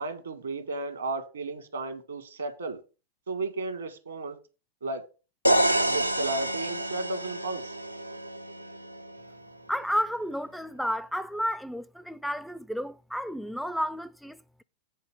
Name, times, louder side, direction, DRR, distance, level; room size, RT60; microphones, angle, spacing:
voice 1, 0.0-2.8 3.3-4.4 4.8-5.0 5.9-7.7, right 3 dB, 70° right, 1.3 m, -34 dB
sound 1, 5.4-9.3, right 1 dB, 90° right, 0.4 m, -28 dB
voice 2, 9.7-14.6, equal, ahead, 0.3 m, -32 dB
8.2 x 4.2 x 6.9 m
figure-of-eight pair, 90°, 0 cm